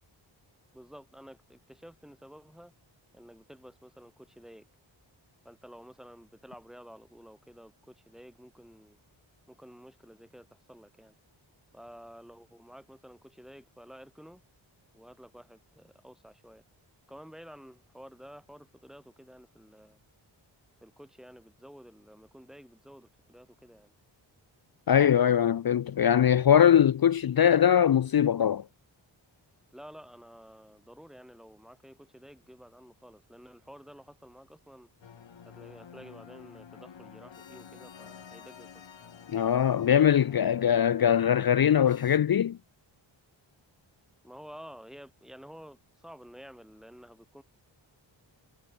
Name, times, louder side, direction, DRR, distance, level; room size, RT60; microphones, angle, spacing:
voice 1, 0.7-2.7 3.1-4.7 5.4-9.0 9.5-11.1 11.7-14.4 14.9-16.6 17.1-20.0 20.8-23.9 29.7-34.9 35.4-38.7 44.2-47.4, equal, ahead, 3.9 m, -51 dB
voice 2, 24.9-28.6 39.3-42.6, left 9 dB, 50° left, 0.6 m, -22 dB
sound 1, 35.0-42.2, left 7 dB, 65° left, 1.7 m, -50 dB
cardioid pair, 50°, 48 cm